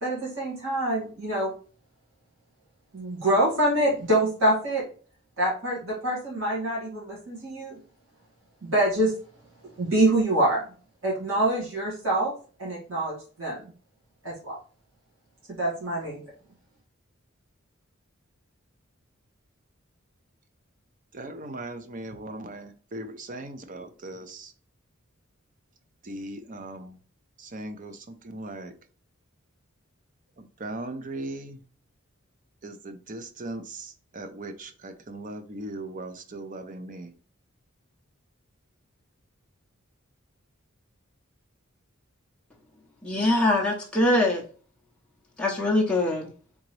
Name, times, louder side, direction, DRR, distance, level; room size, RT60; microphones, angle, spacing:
voice 1, 0.0-1.5 2.9-4.8 5.4-7.8 8.6-9.1 9.8-10.7 11.0-12.3 12.6-13.6 14.2-14.6 15.5-16.2, right 1 dB, 75° right, 2.1 m, -25 dB
voice 2, 21.1-24.5 26.0-27.0 27.4-28.7 30.4-31.6 32.6-37.2, right 2 dB, 40° right, 0.6 m, -38 dB
voice 3, 43.1-44.4 45.4-46.3, left 1 dB, 5° left, 0.6 m, -23 dB
3.9 x 3.5 x 3.2 m
head